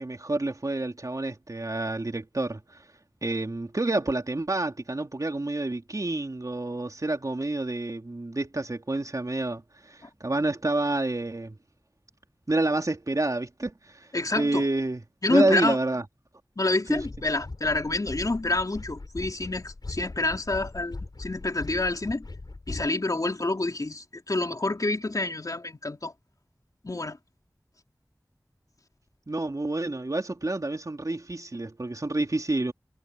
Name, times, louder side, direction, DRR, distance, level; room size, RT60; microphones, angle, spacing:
voice 1, 0.0-2.6 3.2-9.6 9.9-11.6 12.5-14.1 14.4-15.0 15.3-16.0 16.9-17.0 29.3-32.7, right 2 dB, 55° right, 3.5 m, -28 dB
voice 2, 14.1-14.6 15.2-15.8 16.6-22.3 22.7-26.1 26.8-27.2, left 2 dB, 60° left, 3.3 m, -28 dB
sound 1, 16.9-22.9, left 3 dB, 80° left, 5.5 m, -40 dB
wide cardioid pair, 50°, 7 cm